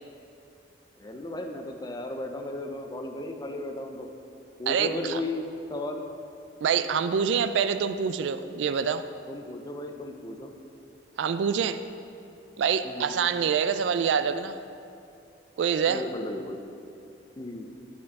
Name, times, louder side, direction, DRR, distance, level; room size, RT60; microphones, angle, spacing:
voice 1, 1.0-4.1 4.6-6.0 9.3-10.5 12.8-13.1 15.9-16.6 17.4-17.7, left 1 dB, 20° left, 4 dB, 0.5 m, -35 dB
voice 2, 4.7-5.2 6.6-9.0 11.2-11.8 12.6-14.6 15.6-16.0, right 7 dB, 75° right, 11 dB, 0.3 m, -26 dB
10.0 x 4.3 x 4.1 m, 2.6 s
head